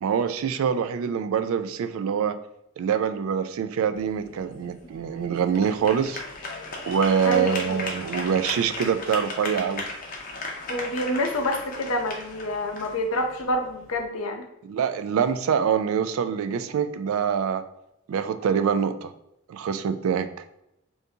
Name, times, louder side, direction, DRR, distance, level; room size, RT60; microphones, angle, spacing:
voice 1, 0.0-2.4 2.8-6.2 6.9-9.9 14.6-17.6 18.1-19.1 19.5-20.3, right 7 dB, 85° right, 11 dB, 0.3 m, -25 dB
sound 1, 4.0-14.0, left 2 dB, 40° left, 0.6 m, -37 dB
voice 2, 7.2-7.8 10.7-14.4, left 1 dB, 85° left, 4 dB, 0.6 m, -27 dB
3.5 x 2.6 x 2.7 m, 0.81 s
head